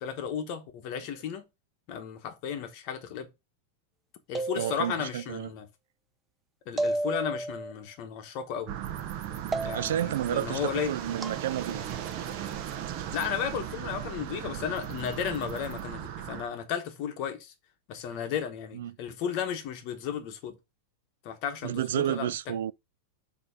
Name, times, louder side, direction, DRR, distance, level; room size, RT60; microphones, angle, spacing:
voice 1, 0.0-1.5 1.9-3.3 4.3-5.7 6.7-8.7 9.6-10.9 13.1-17.5 17.9-20.6 21.2-22.3, left 8 dB, 40° left, 1.0 m, -34 dB
sound 1, 4.4-5.2 6.8-7.7 9.5-10.2 11.2-11.4, right 2 dB, 10° right, 0.5 m, -32 dB
voice 2, 4.6-5.5 9.7-11.8 18.7-19.0 21.6-22.7, right 11 dB, 85° right, 0.3 m, -31 dB
sound 2, 8.7-16.5, right 10 dB, 40° right, 0.8 m, -37 dB
6.8 x 2.9 x 4.9 m
supercardioid pair, 165°, 0 cm